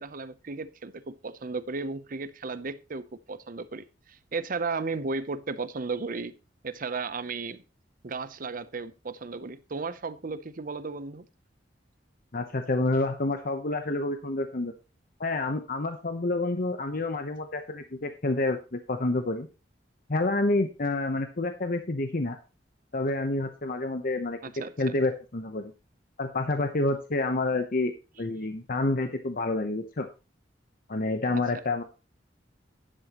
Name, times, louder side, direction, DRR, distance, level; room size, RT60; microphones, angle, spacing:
voice 1, 0.0-6.3 6.6-7.6 8.0-11.3 24.4-24.7 31.3-31.4, right 4 dB, 50° right, 0.7 m, -35 dB
voice 2, 12.3-14.7 15.2-19.5 20.1-22.4 22.9-24.4 24.8-25.7 26.2-27.9 28.2-30.1 30.9-31.8, left 2 dB, 50° left, 0.9 m, -28 dB
11.5 x 10.0 x 3.0 m
head